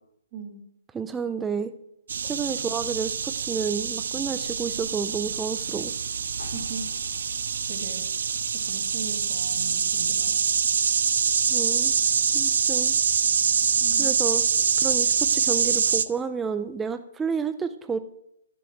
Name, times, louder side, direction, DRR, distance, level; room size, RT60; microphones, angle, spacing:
voice 1, 0.3-0.6 6.5-6.8 7.7-8.0 8.4-10.5 13.8-14.2, right 5 dB, 30° right, 1 dB, 2.9 m, -39 dB
voice 2, 0.9-1.7 2.2-5.9 11.5-11.9 12.3-12.9 14.0-14.4 14.8-18.0, right 6 dB, 10° right, 9 dB, 0.6 m, -30 dB
sound 1, 2.1-16.1, right 6 dB, 70° right, 0.7 m, -25 dB
sound 2, 6.4-10.1 10.5-10.6, left 1 dB, 70° left, 3.1 m, -48 dB
12.5 x 7.7 x 6.5 m, 0.79 s
hypercardioid pair, 145°, 0 cm